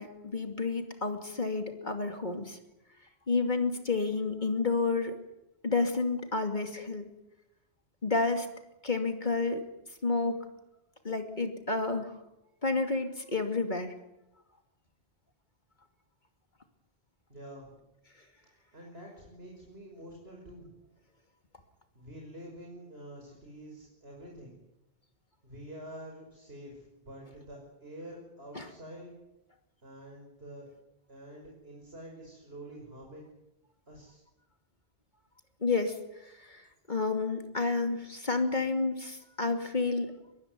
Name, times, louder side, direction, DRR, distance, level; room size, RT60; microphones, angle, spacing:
voice 1, 0.0-2.6 3.3-5.2 5.6-7.1 8.0-8.5 8.8-9.6 10.0-10.4 11.0-12.2 12.6-13.9 28.5-28.7 35.6-40.1, left 3 dB, 45° left, 5 dB, 2.8 m, -30 dB
voice 2, 17.3-17.8 18.7-20.7 21.9-24.5 25.4-29.1 29.8-30.7 31.1-33.3 33.9-34.2, right 1 dB, 65° right, 0 dB, 6.1 m, -47 dB
23.5 x 22.5 x 9.6 m, 0.90 s
omnidirectional pair, 1.1 m